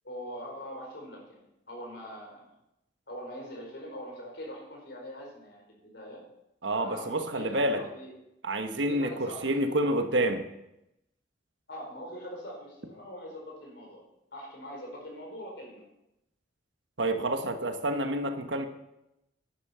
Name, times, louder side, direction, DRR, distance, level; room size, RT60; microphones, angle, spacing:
voice 1, 0.0-2.5 3.1-6.2 6.7-8.1 8.9-9.8 10.1-10.3 11.7-14.0 14.3-15.9, equal, 60° left, 0 dB, 4.9 m, -43 dB
voice 2, 6.6-7.8 8.4-10.4 17.0-18.7, right 1 dB, 70° right, 7 dB, 1.3 m, -28 dB
11.5 x 11.0 x 5.7 m, 0.87 s
head